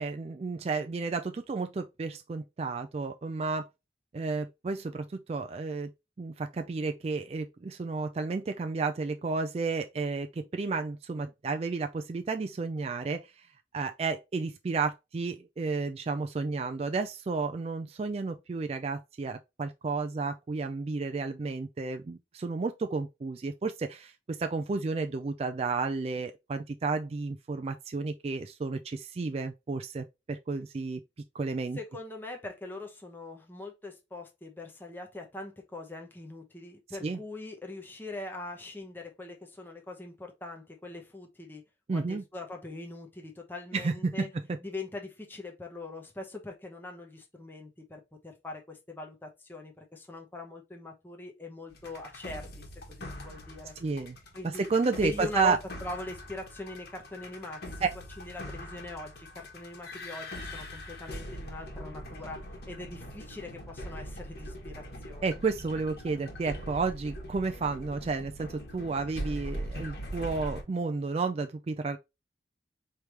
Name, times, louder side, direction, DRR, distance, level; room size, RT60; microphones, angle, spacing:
voice 1, 0.0-3.7 4.1-5.9 6.2-13.5 13.7-31.0 31.3-31.8 37.0-37.2 41.9-42.2 43.7-44.3 53.8-54.2 54.4-55.6 57.8-57.9 65.2-72.0, right 4 dB, 35° right, 0.3 m, -32 dB
voice 2, 31.7-41.6 41.9-44.3 44.6-53.7 54.3-54.7 55.0-57.8 58.2-65.3, left 2 dB, 10° left, 0.8 m, -42 dB
sound 1, 51.7-70.6, equal, 60° left, 1.5 m, -42 dB
4.9 x 3.3 x 2.9 m
head